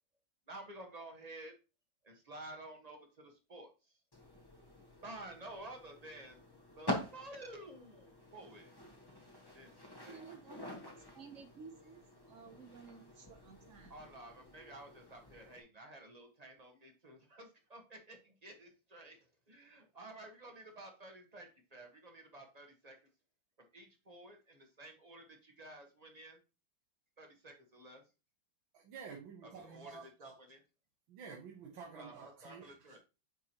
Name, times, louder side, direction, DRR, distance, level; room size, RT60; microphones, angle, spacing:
voice 1, 0.5-1.5 2.0-3.9 5.0-6.4 6.8-8.7 9.5-9.7 10.0-10.2 13.9-19.2 19.5-22.9 23.6-26.4 27.2-28.0 29.4-30.6 31.9-33.0, right 1 dB, 25° right, 3 dB, 1.1 m, -52 dB
sound 1, 4.1-15.6, left 1 dB, 15° left, 1.1 m, -47 dB
voice 2, 10.1-10.8 11.1-12.0 12.3-13.9, right 5 dB, 55° right, 7 dB, 0.9 m, -54 dB
voice 3, 28.7-30.3 31.1-33.0, right 5 dB, 75° right, 0 dB, 1.9 m, -50 dB
9.1 x 4.7 x 2.9 m, 0.30 s
omnidirectional pair, 2.2 m